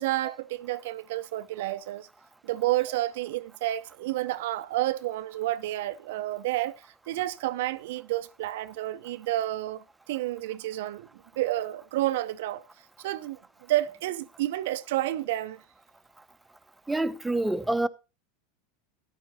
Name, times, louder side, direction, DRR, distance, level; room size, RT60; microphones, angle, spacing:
voice 1, 0.0-2.1 2.4-11.1 11.4-12.6 13.0-13.4 13.7-15.6, right 15 dB, 65° right, 0.5 m, -30 dB
voice 2, 16.9-17.9, right 2 dB, 10° right, 0.7 m, -26 dB
14.0 x 11.0 x 2.7 m
hypercardioid pair, 85°, 0 cm